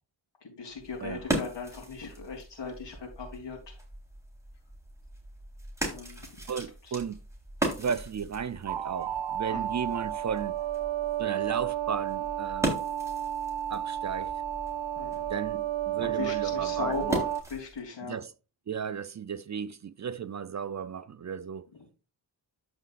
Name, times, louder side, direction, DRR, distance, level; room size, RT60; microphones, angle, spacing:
voice 1, 0.4-3.7 5.8-6.2 6.8-6.9 9.5-9.6 15.0-15.3 16.0-17.2 17.5-18.2, left 5 dB, 70° left, 3.5 m, -38 dB
sound 1, 0.7-17.8, right 2 dB, 5° right, 3.8 m, -38 dB
voice 2, 6.5-7.2 7.8-10.6 11.2-12.8 13.7-14.4 15.3-17.2 18.0-18.3 18.7-21.7, right 7 dB, 40° right, 0.5 m, -35 dB
sound 2, 8.7-17.4, right 11 dB, 75° right, 0.7 m, -32 dB
14.0 x 5.2 x 2.5 m
cardioid pair, 80°, 44 cm